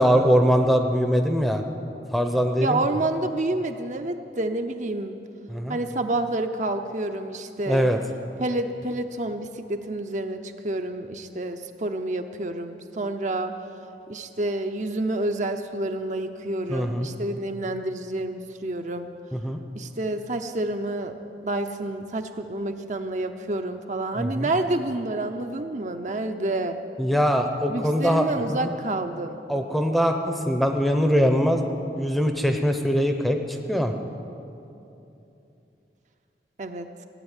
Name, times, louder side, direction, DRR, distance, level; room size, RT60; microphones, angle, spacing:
voice 1, 0.0-1.6 2.1-2.8 5.5-5.8 7.7-8.0 16.7-17.1 19.3-19.6 24.2-24.5 27.0-28.7 29.5-31.6 32.0-33.9, equal, ahead, 5 dB, 0.7 m, -22 dB
voice 2, 2.6-5.2 5.7-7.9 8.4-13.5 14.1-19.1 19.7-21.1 21.4-26.8 27.7-29.4 36.6-36.9, right 2 dB, 40° right, 6 dB, 0.6 m, -29 dB
16.0 x 8.9 x 9.0 m, 2.9 s
head